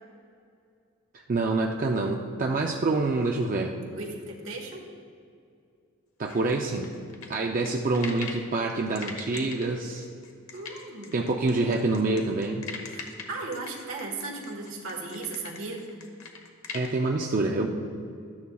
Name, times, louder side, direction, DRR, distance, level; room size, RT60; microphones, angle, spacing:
voice 1, 1.1-3.7 6.2-6.9 7.3-10.1 11.1-12.6 16.7-17.7, right 3 dB, 40° right, 1 dB, 0.4 m, -26 dB
voice 2, 3.9-4.8 10.5-11.2 12.9-15.9, right 3 dB, 70° right, -1 dB, 1.4 m, -36 dB
sound 1, 6.2-8.5 8.9-16.9, left 5 dB, 85° left, 1.1 m, -41 dB
12.5 x 9.5 x 2.3 m, 2.4 s
head